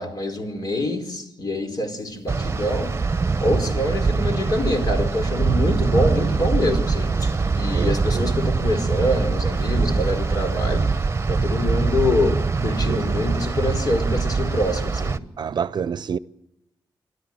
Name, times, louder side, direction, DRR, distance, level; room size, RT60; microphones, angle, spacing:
voice 1, 0.0-3.0 3.4-15.2, left 1 dB, 55° left, 4.7 m, -25 dB
sound 1, 2.3-15.2, right 4 dB, 35° right, 1.0 m, -23 dB
voice 2, 7.7-8.3 12.9-13.0 15.4-16.2, right 7 dB, 65° right, 0.6 m, -28 dB
27.0 x 13.0 x 7.7 m
cardioid pair, 60°, 8 cm